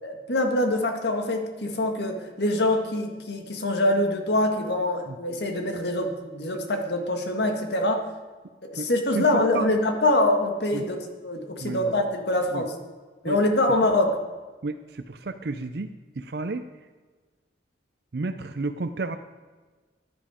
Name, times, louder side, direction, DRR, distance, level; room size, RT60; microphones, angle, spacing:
voice 1, 0.0-8.0 8.6-12.8 13.2-14.2, left 1 dB, 70° left, 4 dB, 1.8 m, -24 dB
voice 2, 9.1-9.7 10.7-10.8 11.6-11.8 12.5-12.6 13.3-13.4 14.6-15.9 16.2-16.6 18.1-19.2, right 3 dB, 60° right, 9 dB, 0.5 m, -31 dB
15.0 x 11.0 x 5.0 m, 1.3 s
head